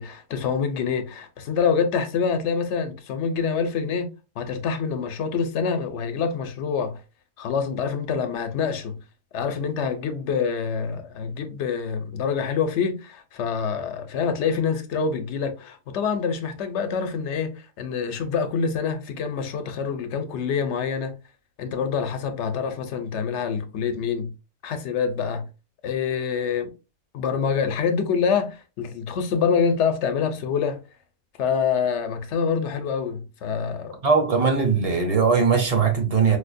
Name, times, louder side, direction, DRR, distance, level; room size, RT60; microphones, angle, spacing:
voice 1, 0.0-7.0 7.4-9.0 9.3-21.1 21.6-24.3 24.6-25.5 25.8-26.7 27.1-30.8 31.4-34.0, left 6 dB, 85° left, 0.9 m, -26 dB
voice 2, 34.0-36.4, right 5 dB, 40° right, 0.7 m, -20 dB
4.9 x 2.1 x 2.5 m
omnidirectional pair, 1.1 m